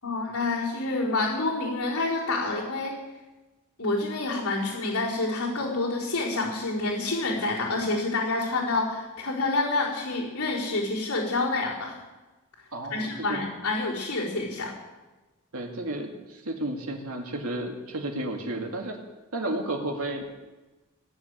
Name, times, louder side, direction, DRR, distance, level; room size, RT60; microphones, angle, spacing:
voice 1, 0.0-2.9 3.8-12.0 12.9-14.7, left 2 dB, 90° left, -7 dB, 4.3 m, -28 dB
voice 2, 12.7-13.4 15.5-19.0 19.3-20.3, right 1 dB, 85° right, 1 dB, 2.2 m, -32 dB
17.5 x 7.3 x 9.7 m, 1.2 s
head